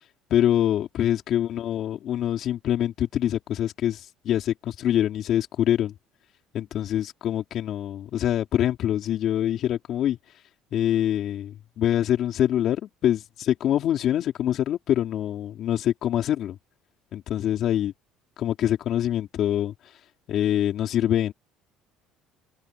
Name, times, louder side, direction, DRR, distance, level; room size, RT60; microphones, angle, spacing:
voice 1, 0.3-5.9 6.5-10.2 10.7-16.6 17.1-17.9 18.4-19.7 20.3-21.3, left 11 dB, 55° left, 4.1 m, -25 dB
open air
cardioid pair, 110°, 0 cm